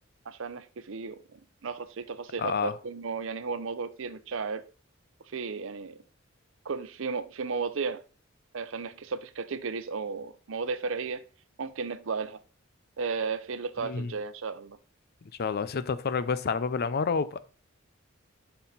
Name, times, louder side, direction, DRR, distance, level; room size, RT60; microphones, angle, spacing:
voice 1, 0.3-4.6 5.3-6.0 6.6-8.0 8.5-11.2 11.6-12.4 13.0-14.8, right 5 dB, 70° right, 0.7 m, -34 dB
voice 2, 2.4-2.7 13.8-14.1 15.4-17.4, left 5 dB, 50° left, 0.5 m, -29 dB
6.8 x 5.6 x 4.0 m
head